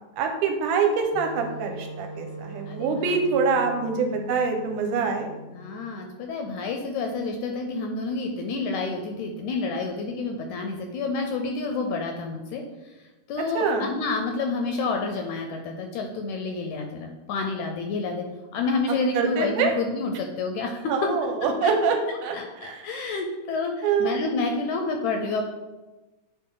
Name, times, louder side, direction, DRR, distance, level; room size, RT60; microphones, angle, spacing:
voice 1, 0.0-5.3 13.4-13.9 19.1-19.7 20.9-22.8 23.8-24.3, right 5 dB, 80° right, 4 dB, 2.1 m, -25 dB
Wind instrument woodwind instrument, 1.1-5.8, right 2 dB, 40° left, 1.1 m, -40 dB
voice 2, 5.5-12.6 13.3-18.2 18.5-21.1 21.6-21.7 22.3-25.4, left 3 dB, 80° left, 3 dB, 1.8 m, -29 dB
8.2 x 4.2 x 3.8 m, 1.1 s
omnidirectional pair, 3.8 m